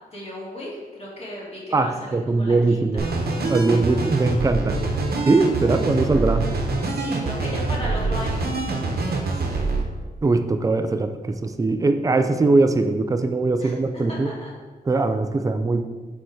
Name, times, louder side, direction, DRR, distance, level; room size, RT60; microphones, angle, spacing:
voice 1, 0.1-3.2 6.8-8.5 9.0-9.7 13.6-14.5, left 1 dB, 40° left, -5 dB, 2.2 m, -36 dB
voice 2, 1.7-3.1 3.5-4.8 5.2-6.5 10.2-14.3 14.9-15.8, right 3 dB, 20° right, 8 dB, 0.4 m, -21 dB
sound 1, 3.0-9.8, right 3 dB, 75° right, 1.0 m, -25 dB
6.8 x 4.6 x 4.5 m, 1.4 s
wide cardioid pair, 150°, 16 cm